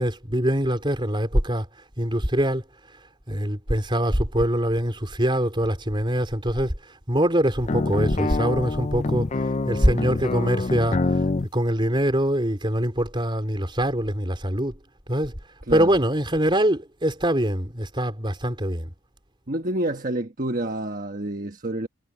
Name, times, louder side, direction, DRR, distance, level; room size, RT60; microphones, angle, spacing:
voice 1, 0.0-1.7 2.0-2.6 3.3-11.2 11.5-14.8 15.1-15.3 15.7-18.9, right 1 dB, 25° right, 3.9 m, -23 dB
sound 1, 7.6-11.5, left 3 dB, 35° left, 0.5 m, -25 dB
voice 2, 19.5-21.9, right 1 dB, 40° right, 1.3 m, -28 dB
head